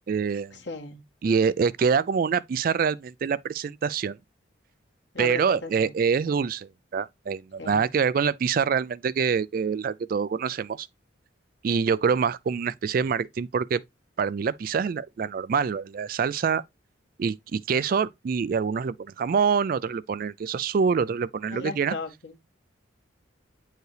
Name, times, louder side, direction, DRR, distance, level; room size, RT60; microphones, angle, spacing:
voice 1, 0.1-0.6 1.2-4.2 5.2-10.9 11.6-13.8 14.2-16.6 17.2-21.9, right 6 dB, 45° right, 0.3 m, -25 dB
voice 2, 0.6-1.0 5.1-5.9 7.6-7.9 21.5-22.4, left 3 dB, 65° left, 1.9 m, -36 dB
9.1 x 4.6 x 3.3 m
head